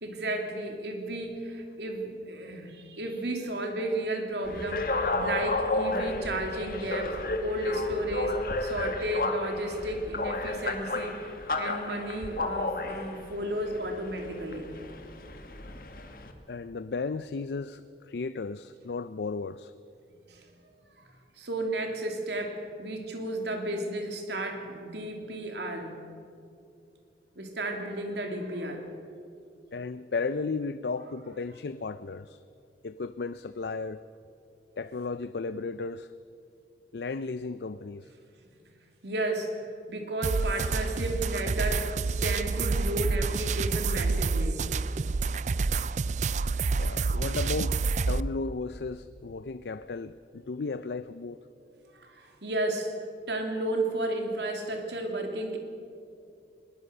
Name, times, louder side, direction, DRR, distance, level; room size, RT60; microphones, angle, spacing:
voice 1, 0.0-11.2 11.6-14.7 20.3-20.5 21.0-21.1 21.4-25.9 27.4-28.9 39.0-39.6 39.9-44.7 51.9-52.9 53.3-55.6, right 1 dB, 80° right, 3 dB, 2.8 m, -33 dB
sound 1, 4.4-16.3, left 2 dB, 55° left, 1.7 m, -32 dB
voice 2, 16.5-19.7 29.7-32.4 32.8-34.0 34.8-36.1 36.9-38.1 46.8-47.8 48.1-51.4, left 4 dB, 70° left, 13 dB, 0.5 m, -34 dB
sound 2, 40.2-48.2, right 4 dB, 40° right, 0.4 m, -28 dB
21.0 x 19.0 x 6.7 m, 2.5 s
head